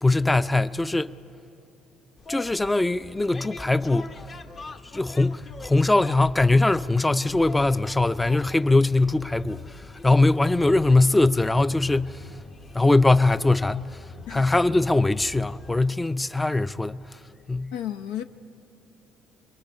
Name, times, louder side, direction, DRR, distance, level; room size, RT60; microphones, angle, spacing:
voice 1, 0.0-1.2 2.3-4.2 4.9-12.3 12.7-14.0 14.3-17.2 17.5-17.7, left 2 dB, 15° left, 0.5 m, -21 dB
sound 1, 2.2-15.9, left 3 dB, 40° left, 1.0 m, -43 dB
voice 2, 17.7-18.2, left 11 dB, 85° left, 0.7 m, -32 dB
29.0 x 23.0 x 5.5 m
hypercardioid pair, 65°, 0 cm